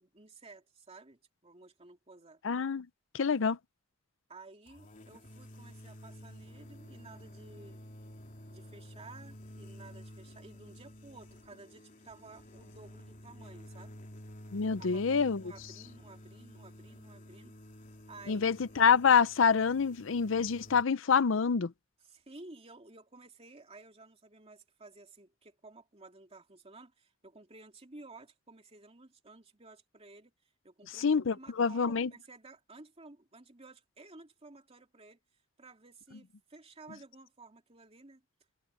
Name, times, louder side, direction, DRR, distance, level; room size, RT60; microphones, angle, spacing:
voice 1, 0.0-2.4 4.3-7.8 8.5-14.0 14.8-17.5 18.1-18.5 22.1-35.2 35.6-38.2, right 3 dB, 30° right, 2.7 m, -54 dB
voice 2, 2.4-2.9 3.1-3.6 14.5-15.4 18.3-21.7 31.0-32.1, left 6 dB, 75° left, 0.6 m, -26 dB
sound 1, 4.7-20.8, equal, 40° left, 3.2 m, -51 dB
head